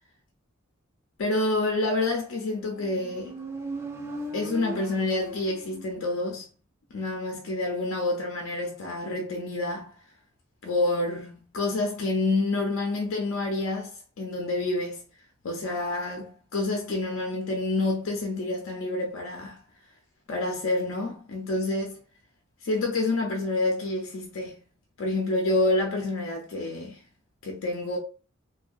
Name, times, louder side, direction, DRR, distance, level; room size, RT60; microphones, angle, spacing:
voice 1, 1.2-3.3 4.3-6.4 6.9-10.0 10.6-15.0 15.4-19.6 20.3-22.0 22.6-24.6 25.0-27.0 27.4-28.0, left 2 dB, 75° left, 0.5 m, -28 dB
Motorcycle, 2.5-6.2, right 1 dB, 15° right, 0.4 m, -38 dB
2.6 x 2.2 x 2.3 m
head